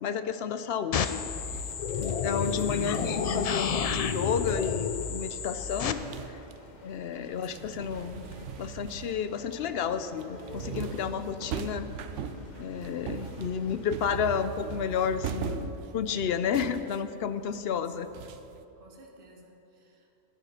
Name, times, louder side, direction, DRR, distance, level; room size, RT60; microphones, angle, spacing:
voice 1, 0.0-1.2 2.0-6.0 6.3-6.4 6.8-8.3 8.6-11.9 12.6-18.1, left 7 dB, 65° left, 11 dB, 0.7 m, -31 dB
sound 1, 0.9-5.9, left 7 dB, 80° left, 0.3 m, -30 dB
sound 2, 1.3-6.8 7.1-18.6, right 7 dB, 80° right, 0.9 m, -41 dB
sound 3, 1.7-14.2, left 2 dB, 40° left, 1.0 m, -49 dB
voice 2, 7.5-7.9 15.8-15.9 17.5-17.9 18.8-20.1, right 2 dB, 50° right, 1 dB, 1.4 m, -51 dB
10.5 x 9.7 x 5.7 m, 2.8 s
omnidirectional pair, 1.2 m